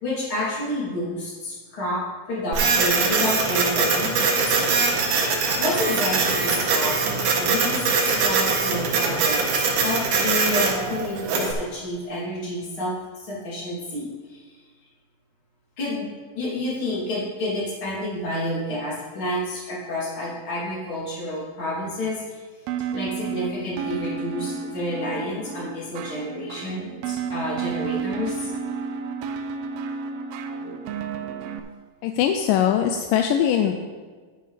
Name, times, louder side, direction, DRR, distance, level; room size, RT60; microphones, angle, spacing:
voice 1, 0.0-2.0 2.3-4.6 5.2-6.9 7.4-9.4 9.8-14.4 15.8-16.1 16.4-22.4 22.9-28.5, left 1 dB, 35° left, -7 dB, 3.5 m, -29 dB
Printer, 2.5-11.5, right 4 dB, 65° right, 2.7 m, -22 dB
sound 1, 22.7-31.6, right 6 dB, 85° right, 2.5 m, -31 dB
voice 2, 32.0-33.7, left 9 dB, 80° left, 5 dB, 2.0 m, -21 dB
11.0 x 9.8 x 3.3 m, 1.5 s
omnidirectional pair, 4.3 m